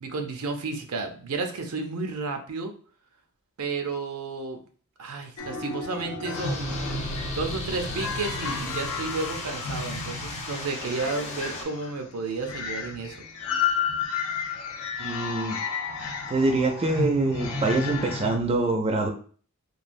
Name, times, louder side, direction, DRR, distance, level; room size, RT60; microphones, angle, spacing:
voice 1, 0.0-2.7 3.6-4.6 5.0-6.8 7.4-13.2, right 3 dB, 85° right, 5 dB, 0.5 m, -32 dB
sound 1, 5.4-18.3, left 4 dB, 85° left, 0.6 m, -32 dB
sound 2, 6.3-11.6, left 2 dB, 30° left, 0.7 m, -36 dB
voice 2, 15.0-15.6 16.3-19.1, right 2 dB, 30° right, 3 dB, 0.4 m, -25 dB
3.1 x 2.3 x 2.5 m, 0.42 s
head